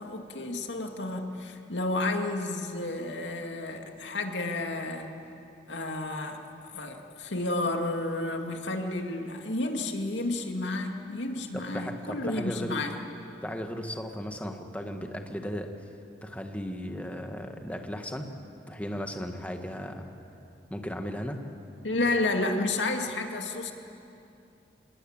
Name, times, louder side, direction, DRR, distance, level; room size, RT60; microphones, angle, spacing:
voice 1, 0.0-5.1 5.7-6.4 6.7-12.9 21.8-23.7, left 2 dB, 90° left, 3 dB, 2.3 m, -31 dB
voice 2, 11.5-12.9 13.4-15.7 16.2-18.3 18.7-20.1 20.7-21.4, equal, 10° left, 4 dB, 1.7 m, -36 dB
27.0 x 20.5 x 8.9 m, 2.7 s
head